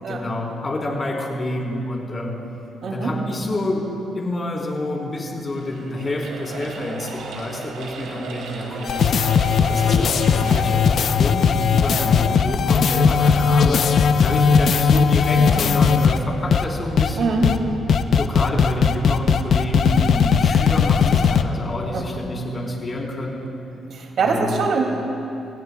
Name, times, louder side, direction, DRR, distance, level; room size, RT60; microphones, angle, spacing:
voice 1, 0.1-2.4 2.9-3.8 4.1-9.1 9.7-17.4 18.1-23.5 24.2-24.7, left 1 dB, 30° left, -2 dB, 3.9 m, -28 dB
voice 2, 2.8-3.1 10.4-10.7 11.9-12.2 15.4-15.7 17.1-17.5 19.6-19.9 21.9-22.3 23.9-24.9, right 4 dB, 65° right, 1 dB, 2.5 m, -25 dB
sound 1, 5.4-10.6, right 4 dB, 85° right, 2.2 m, -36 dB
sound 2, 8.8-16.2 16.5-16.6 17.0-17.1 17.4-17.6 17.9-21.4, left 6 dB, 60° left, 0.7 m, -17 dB
29.5 x 16.5 x 2.3 m, 2.8 s
cardioid pair, 90°, 0 cm